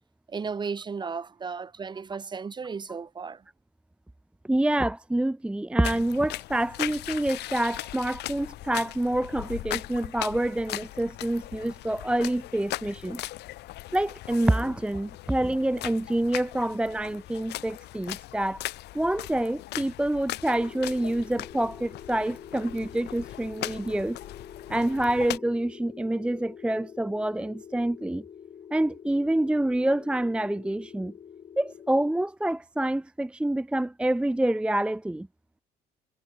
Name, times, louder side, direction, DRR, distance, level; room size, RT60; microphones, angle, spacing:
voice 1, 0.3-3.4, right 5 dB, 25° right, 1.1 m, -34 dB
voice 2, 4.5-13.2 13.9-18.6 18.9-24.2 24.7-28.2 28.7-31.1 31.6-35.3, right 1 dB, 5° right, 0.6 m, -27 dB
sound 1, 5.8-25.4, left 17 dB, 80° left, 3.2 m, -39 dB
sound 2, 20.5-32.2, left 8 dB, 45° left, 2.6 m, -46 dB
cardioid pair, 110°, 17 cm